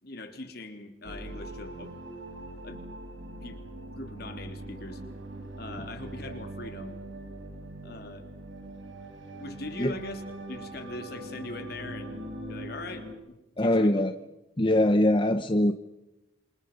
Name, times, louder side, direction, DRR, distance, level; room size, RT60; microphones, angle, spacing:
voice 1, 0.0-1.9 2.6-2.8 3.4-3.6 3.9-5.0 5.5-6.9 7.8-8.3 9.4-10.2 10.5-14.0, left 2 dB, 55° left, 5 dB, 3.4 m, -41 dB
sound 1, 1.0-13.1, right 1 dB, 80° right, 4.6 m, -41 dB
voice 2, 13.6-14.1 14.6-15.7, left 1 dB, 25° left, 8 dB, 0.9 m, -22 dB
27.5 x 27.5 x 5.5 m, 0.96 s
head